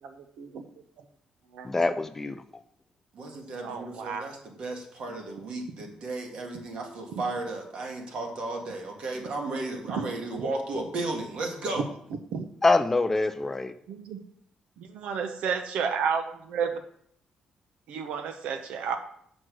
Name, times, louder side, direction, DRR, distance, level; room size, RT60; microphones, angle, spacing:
voice 1, 0.0-0.6 1.5-1.7 3.6-4.2 7.1-7.2 9.9-10.0 11.8-11.9 12.3-12.5 13.9-14.2 14.8-16.8 17.9-19.0, right 6 dB, 85° right, 7 dB, 0.8 m, -31 dB
voice 2, 1.6-2.6 12.6-13.7, left 3 dB, 15° left, 10 dB, 0.4 m, -25 dB
voice 3, 3.1-11.9, right 2 dB, 55° right, 2 dB, 1.8 m, -34 dB
6.5 x 6.1 x 6.1 m, 0.67 s
cardioid pair, 155°, 2 cm